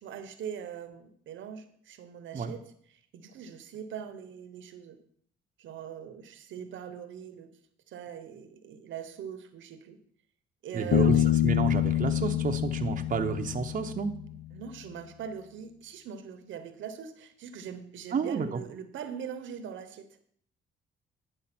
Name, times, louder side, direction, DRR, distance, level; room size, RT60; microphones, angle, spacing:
voice 1, 0.0-5.0 5.6-7.6 7.9-10.0 10.6-11.3 14.5-20.1, right 8 dB, 75° right, 10 dB, 1.0 m, -41 dB
voice 2, 10.7-11.2 11.4-14.1 18.1-18.6, right 5 dB, 40° right, 4 dB, 0.8 m, -30 dB
Bass guitar, 10.9-14.4, left 12 dB, 60° left, 0.5 m, -26 dB
9.9 x 5.0 x 6.0 m, 0.63 s
cardioid pair, 90°, 20 cm